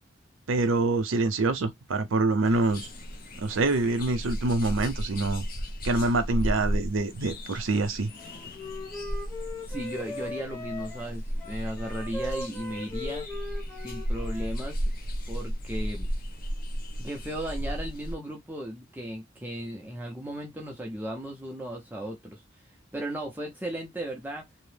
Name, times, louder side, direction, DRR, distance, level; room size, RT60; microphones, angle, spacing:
voice 1, 0.5-2.9 3.4-5.5 5.8-8.1, right 3 dB, 85° right, 0.6 m, -25 dB
Tropical Dawn Calmer, 2.4-18.1, equal, 45° left, 0.6 m, -34 dB
Wind instrument woodwind instrument, 8.2-14.5, left 2 dB, 10° left, 0.8 m, -39 dB
voice 2, 9.4-13.2 13.8-14.8 15.3-16.1 17.0-22.4 22.9-24.5, right 1 dB, 10° right, 0.5 m, -36 dB
2.8 x 2.0 x 3.2 m
head